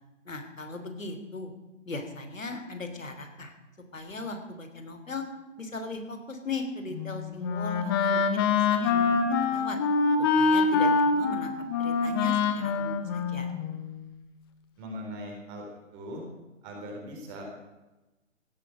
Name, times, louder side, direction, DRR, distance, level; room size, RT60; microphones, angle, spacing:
voice 1, 0.2-1.5 1.8-3.5 3.9-5.2 5.6-9.8 10.4-11.5 11.8-13.5, left 2 dB, 85° left, 6 dB, 3.3 m, -38 dB
Wind instrument woodwind instrument, 6.9-14.1, left 4 dB, 20° left, 1.0 m, -25 dB
voice 2, 14.8-16.2 16.6-17.4, equal, 20° right, 0 dB, 4.1 m, -40 dB
16.5 x 9.2 x 7.6 m, 1.0 s
figure-of-eight pair, 150°, 38 cm